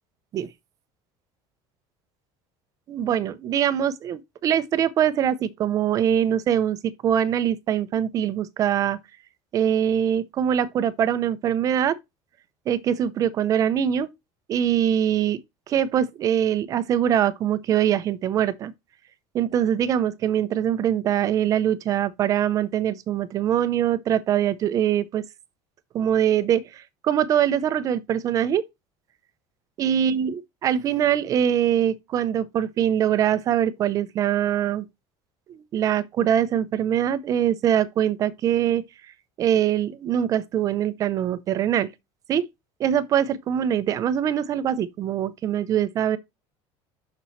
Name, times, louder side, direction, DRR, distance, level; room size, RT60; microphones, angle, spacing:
voice 1, 2.9-9.0 9.5-12.0 12.7-14.1 14.5-15.4 15.7-18.7 19.3-25.2 25.9-28.6 29.8-34.9 35.5-38.8 39.4-41.9 42.3-42.4 42.8-46.2, right 10 dB, 30° right, 0.6 m, -23 dB
6.9 x 6.1 x 3.1 m
cardioid pair, 180°, 11 cm